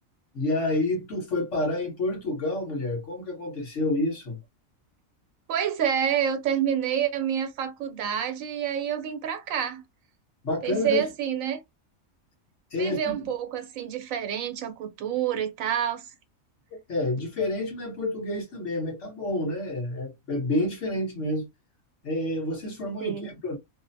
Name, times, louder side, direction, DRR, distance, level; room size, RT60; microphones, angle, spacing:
voice 1, 0.3-4.4 10.4-11.0 12.7-13.2 16.9-21.5 22.0-23.6, left 2 dB, 60° left, 1.4 m, -29 dB
voice 2, 5.5-9.8 10.6-11.6 12.8-16.1 23.0-23.3, right 9 dB, 75° right, 1.0 m, -28 dB
3.0 x 2.0 x 2.5 m
omnidirectional pair, 1.4 m